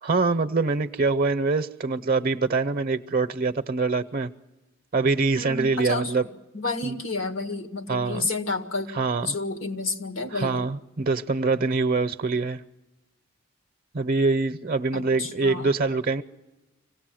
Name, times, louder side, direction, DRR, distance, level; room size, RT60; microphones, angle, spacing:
voice 1, 0.0-4.3 4.9-6.3 6.8-7.0 7.9-8.3 8.9-9.3 10.3-12.6 13.9-16.2, right 3 dB, 45° right, 8 dB, 0.6 m, -24 dB
voice 2, 5.3-6.1 6.5-8.9 9.2-10.7 14.9-15.7, left 3 dB, 80° left, 3 dB, 1.9 m, -30 dB
25.5 x 17.5 x 7.6 m, 1.1 s
head